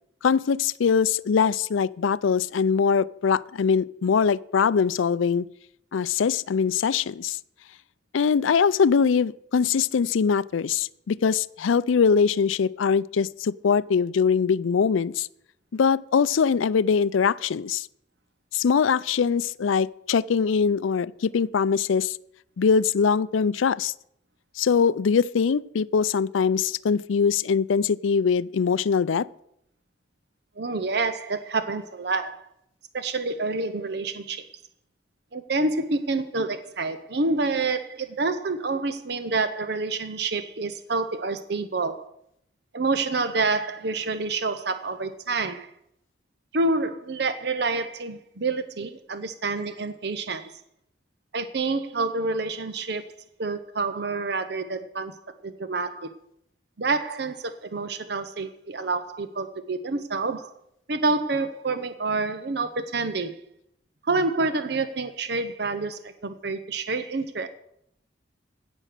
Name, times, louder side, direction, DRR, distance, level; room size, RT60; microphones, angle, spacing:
voice 1, 0.2-5.5 5.9-7.4 8.1-15.3 15.7-17.9 18.5-22.2 22.6-23.9 24.6-29.3, left 6 dB, 85° left, 0.4 m, -22 dB
voice 2, 30.6-32.4 32.9-34.5 35.3-42.1 42.7-45.7 46.5-50.5 51.3-53.1 53.4-55.2 55.4-56.1 56.8-60.5 60.9-63.4 64.0-67.5, right 3 dB, 55° right, 0.7 m, -28 dB
16.5 x 6.3 x 6.6 m
head